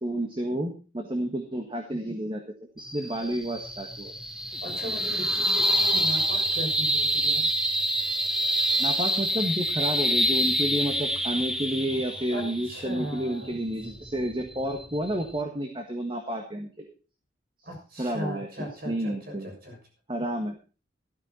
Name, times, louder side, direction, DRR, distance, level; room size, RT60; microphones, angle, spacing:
voice 1, 0.0-2.4 2.8-4.1 8.8-16.9 18.0-19.5 20.1-20.5, right 1 dB, 30° right, 4 dB, 1.5 m, -30 dB
sound 1, 2.8-15.4, equal, 5° right, 0.9 m, -27 dB
voice 2, 4.6-7.5 12.3-13.6 17.6-19.8, equal, 55° right, 1 dB, 6.6 m, -37 dB
13.0 x 12.5 x 4.3 m, 0.34 s
head